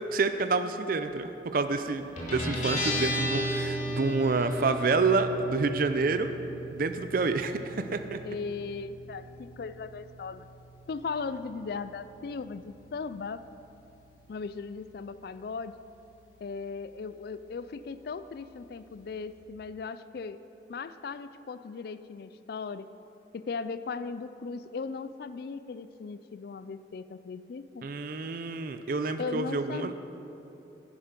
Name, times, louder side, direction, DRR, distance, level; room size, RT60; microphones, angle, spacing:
voice 1, 0.0-6.3 6.7-8.2 27.8-29.9, right 4 dB, 50° right, 9 dB, 0.5 m, -28 dB
Guitar, 2.2-19.4, equal, 40° left, 2.4 m, -38 dB
voice 2, 8.2-10.5 10.9-13.4 14.3-15.8 16.4-20.4 20.7-22.9 23.3-27.9 29.2-29.9, left 4 dB, 60° left, 13 dB, 0.4 m, -37 dB
11.0 x 10.0 x 5.2 m, 3.0 s
head